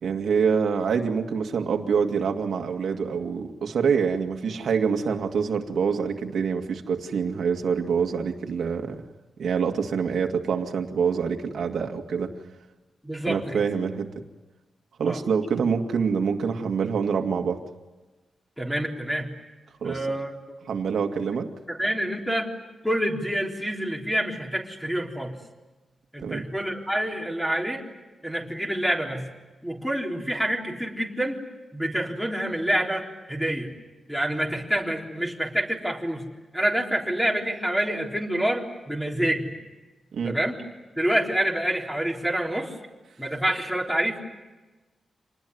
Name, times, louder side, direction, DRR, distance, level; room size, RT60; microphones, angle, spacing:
voice 1, 0.0-9.0 9.4-12.3 13.3-14.1 15.0-17.6 19.8-20.0 20.7-21.5 26.2-26.4 40.1-40.4, right 6 dB, 75° right, 3 dB, 2.2 m, -26 dB
voice 2, 13.0-13.6 15.0-15.2 18.6-19.3 19.8-20.3 21.7-22.5 22.8-25.3 26.1-27.8 28.2-29.2 29.6-31.4 31.7-33.7 34.1-36.2 36.5-39.5 40.2-40.6 41.0-42.7 43.2-44.2, right 1 dB, 5° left, 0 dB, 3.8 m, -27 dB
27.5 x 20.0 x 9.6 m, 1.2 s
wide cardioid pair, 130°, 0 cm